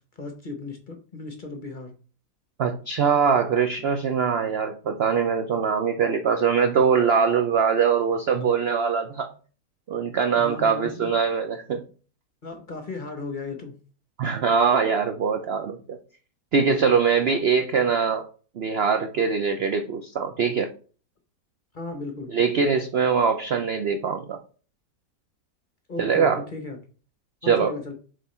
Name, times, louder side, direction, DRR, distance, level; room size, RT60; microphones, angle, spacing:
voice 1, 0.2-1.9 10.3-11.1 12.4-13.7 16.6-17.0 21.7-22.3 25.9-26.8 27.4-27.9, left 3 dB, 35° left, 4 dB, 0.9 m, -35 dB
voice 2, 2.6-9.3 9.9-11.8 14.2-16.0 16.5-18.3 18.6-20.7 22.3-24.4 26.0-26.4 27.4-27.7, right 6 dB, 65° right, 6 dB, 0.6 m, -22 dB
7.0 x 3.6 x 4.3 m, 0.40 s
omnidirectional pair, 1.7 m